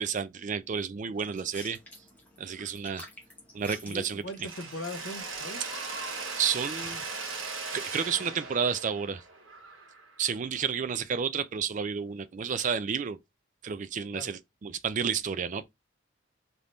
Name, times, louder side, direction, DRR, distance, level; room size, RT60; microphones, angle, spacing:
voice 1, 0.0-1.8 2.4-3.0 3.5-4.5 5.6-5.7 6.4-7.1 7.7-9.2 10.2-13.2 13.6-15.6, right 6 dB, 35° right, 0.3 m, -31 dB
sound 1, 1.1-7.4, left 1 dB, 10° left, 0.9 m, -51 dB
voice 2, 3.8-5.6 14.1-14.3, left 1 dB, 60° left, 0.6 m, -40 dB
Mechanisms, 4.4-10.3, right 4 dB, 65° right, 1.0 m, -38 dB
3.4 x 2.5 x 4.2 m
head